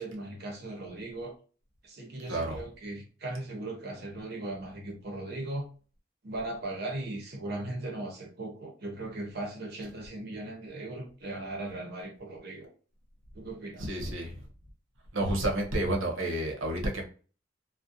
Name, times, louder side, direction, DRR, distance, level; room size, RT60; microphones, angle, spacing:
voice 1, 0.0-1.3 1.8-5.7 6.2-12.7 13.3-14.0, right 2 dB, 55° right, 0.6 m, -38 dB
voice 2, 13.8-14.4 15.1-17.0, right 1 dB, 90° right, 0.8 m, -30 dB
2.4 x 2.1 x 2.6 m
head